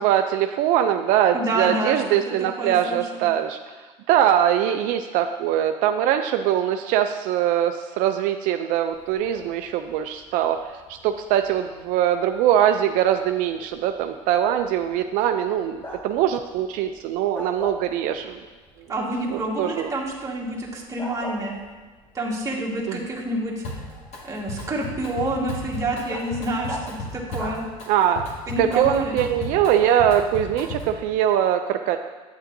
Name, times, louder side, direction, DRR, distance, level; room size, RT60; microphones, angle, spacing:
voice 1, 0.0-3.6 4.1-18.4 19.3-19.9 22.9-23.0 27.9-28.2 28.6-32.0, right 10 dB, 70° right, 7 dB, 0.4 m, -22 dB
voice 2, 1.3-2.2 2.6-3.3 18.9-21.5 22.1-23.6 24.2-27.6 28.5-29.1, right 2 dB, 20° right, -2 dB, 1.6 m, -28 dB
Bark, 8.9-28.3, equal, 15° left, 1.2 m, -44 dB
Drum kit, 23.6-24.2 24.5-31.0, left 1 dB, 50° left, 1.9 m, -34 dB
8.8 x 8.0 x 2.6 m, 1.3 s
supercardioid pair, 110°, 14 cm